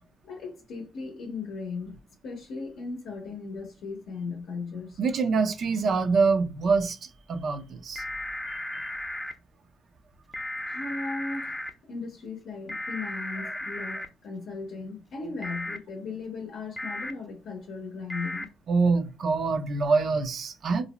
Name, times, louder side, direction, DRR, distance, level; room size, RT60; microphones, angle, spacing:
voice 1, 0.2-2.0 2.2-5.0 10.6-11.6 11.9-18.5, left 4 dB, 75° left, 0.6 m, -37 dB
voice 2, 5.0-8.0 18.7-20.8, right 4 dB, 55° right, 0.5 m, -25 dB
sound 1, 8.0-9.3 10.3-11.7 12.7-14.1 15.4-15.8 16.8-17.1 18.1-18.5, left 1 dB, 10° left, 0.5 m, -35 dB
2.5 x 2.0 x 2.9 m
cardioid pair, 90°, 0 cm